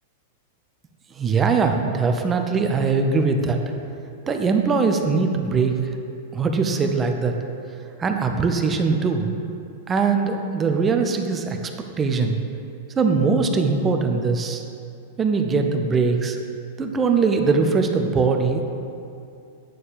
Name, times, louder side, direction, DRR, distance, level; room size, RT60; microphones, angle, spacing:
voice 1, 1.2-3.6 4.3-5.7 6.3-7.3 8.0-9.3 9.9-11.6 12.0-12.4 13.0-14.6 15.2-16.4 16.8-18.7, right 4 dB, 25° right, 4 dB, 0.8 m, -21 dB
9.4 x 4.3 x 6.8 m, 2.6 s
hypercardioid pair, 100°, 0 cm